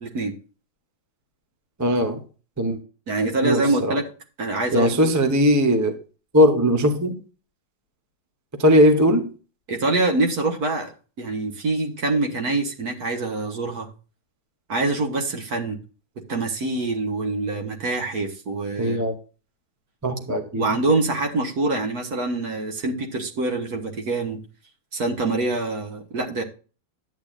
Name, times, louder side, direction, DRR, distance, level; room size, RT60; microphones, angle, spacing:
voice 1, 0.0-0.3 3.1-4.1 4.4-5.1 9.7-13.9 14.7-15.8 16.3-19.0 20.6-24.4 24.9-26.4, right 2 dB, 55° right, 1.8 m, -25 dB
voice 2, 1.8-2.2 2.6-2.8 3.4-3.9 4.7-5.9 6.3-7.1 8.6-9.3 18.8-19.1 20.0-20.6, equal, 15° right, 0.7 m, -19 dB
11.0 x 8.7 x 2.5 m
omnidirectional pair, 2.1 m